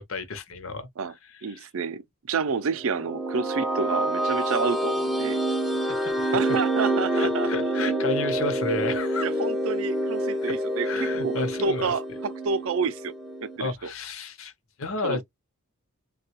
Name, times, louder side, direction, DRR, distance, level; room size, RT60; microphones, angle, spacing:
voice 1, 0.0-1.7 5.9-6.4 7.1-9.3 10.4-10.5 10.8-11.9 13.6-14.5 14.8-15.2, left 3 dB, 65° left, 0.7 m, -32 dB
voice 2, 1.4-5.4 6.3-7.5 9.2-13.1 13.4-13.9 15.0-15.2, right 5 dB, 65° right, 0.4 m, -29 dB
sound 1, 2.7-13.6, right 1 dB, ahead, 0.4 m, -27 dB
3.2 x 2.3 x 2.9 m
head